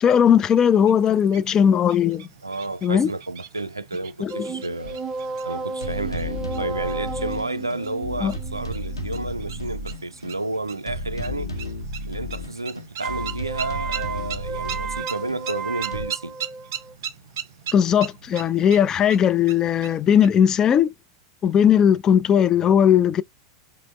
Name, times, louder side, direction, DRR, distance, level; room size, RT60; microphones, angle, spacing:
voice 1, 0.0-2.3 2.8-3.1 4.2-4.5 8.2-8.3 17.7-20.9 21.4-23.2, left 8 dB, 25° left, 0.3 m, -18 dB
sound 1, 0.8-20.3, right 8 dB, 55° right, 0.8 m, -40 dB
voice 2, 2.4-5.0 5.5-11.5 12.1-16.4, right 2 dB, 85° right, 0.3 m, -31 dB
sound 2, 4.3-9.7 13.0-16.9, right 4 dB, 25° right, 0.5 m, -33 dB
sound 3, 4.8-4.9 5.8-16.1, left 1 dB, 90° left, 0.8 m, -33 dB
5.0 x 2.0 x 3.1 m
figure-of-eight pair, 85°, 2 cm